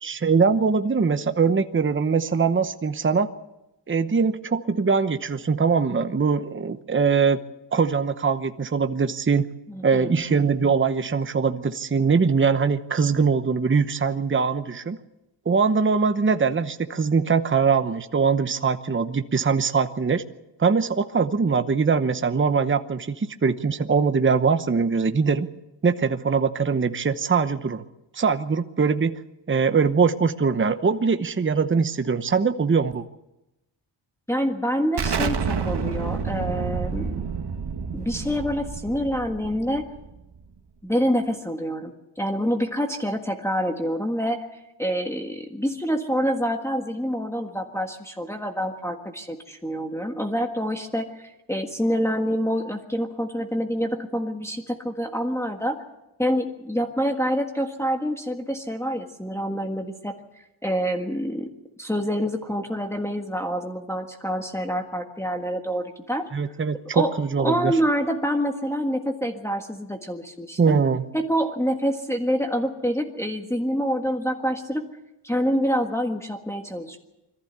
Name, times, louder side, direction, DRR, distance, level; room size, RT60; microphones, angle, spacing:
voice 1, 0.0-3.3 3.9-7.4 7.7-9.5 9.8-15.0 15.5-20.2 20.6-25.5 25.8-27.8 28.1-29.2 29.5-33.0 66.3-67.7 70.6-71.0, right 5 dB, 25° right, 9 dB, 0.9 m, -22 dB
voice 2, 9.7-10.2 34.3-37.2 37.9-39.8 40.8-44.5 44.8-55.8 56.2-60.1 60.6-61.5 61.8-66.2 66.9-67.1 67.4-70.8 71.1-74.9 75.2-77.0, equal, 5° left, 2 dB, 1.6 m, -26 dB
Explosion, 35.0-40.4, right 5 dB, 60° right, 1.7 m, -29 dB
22.5 x 14.5 x 8.1 m, 0.95 s
wide cardioid pair, 90°, 45 cm